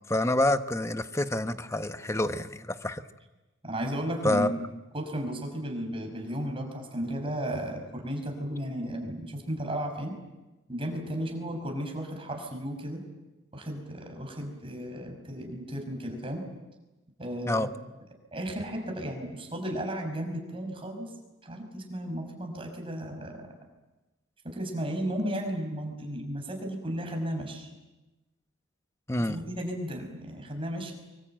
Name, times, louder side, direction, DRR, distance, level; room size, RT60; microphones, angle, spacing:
voice 1, 0.1-3.0 4.2-4.5 17.5-17.7 29.1-29.4, left 1 dB, 15° left, 10 dB, 1.0 m, -27 dB
voice 2, 3.6-4.7 4.9-10.1 10.7-13.0 13.5-16.4 17.2-17.7 18.3-21.1 21.4-23.5 24.4-27.7 29.2-30.9, equal, 25° right, 4 dB, 5.8 m, -34 dB
25.0 x 23.5 x 9.0 m, 1.1 s
head